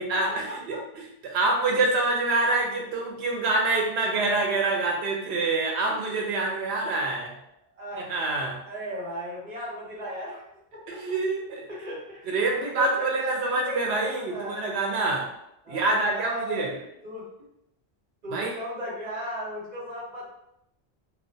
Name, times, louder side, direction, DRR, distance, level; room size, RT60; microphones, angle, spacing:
voice 1, 0.0-7.3 7.9-8.6 10.9-11.7 12.3-15.3 15.7-16.7 18.3-18.5, right 3 dB, 90° right, 0 dB, 0.9 m, -26 dB
voice 2, 8.7-10.4 10.7-11.0 11.7-14.7 15.6-16.6 17.0-17.2 18.2-20.2, equal, 45° right, -5 dB, 0.9 m, -35 dB
2.2 x 2.2 x 2.6 m, 0.79 s
omnidirectional pair, 1.1 m